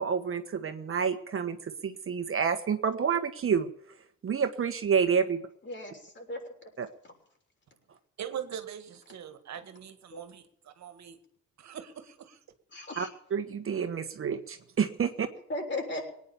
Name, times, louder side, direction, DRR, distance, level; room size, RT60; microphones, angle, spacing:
voice 1, 0.0-3.7 4.2-5.4 6.8-6.9 13.0-13.1 13.3-15.3, right 6 dB, 45° right, 8 dB, 1.4 m, -29 dB
voice 2, 5.6-6.5 7.0-7.1 10.1-10.2 12.7-13.1 15.5-16.0, left 2 dB, 40° left, 2 dB, 6.6 m, -36 dB
voice 3, 8.2-11.2 11.6-12.4, right 9 dB, 65° right, 9 dB, 1.9 m, -42 dB
19.0 x 9.8 x 7.1 m, 0.69 s
cardioid pair, 90°, 30 cm